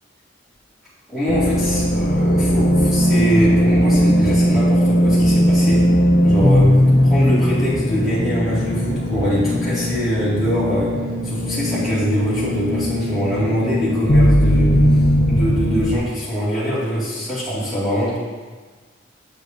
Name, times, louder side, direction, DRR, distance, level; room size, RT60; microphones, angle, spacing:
voice 1, 1.1-5.8 6.2-6.7 7.0-10.9 11.2-18.2, equal, ahead, -11 dB, 2.1 m, -23 dB
sound 1, 1.3-16.0, equal, 50° left, 0.6 m, -18 dB
8.1 x 7.2 x 2.7 m, 1.4 s
head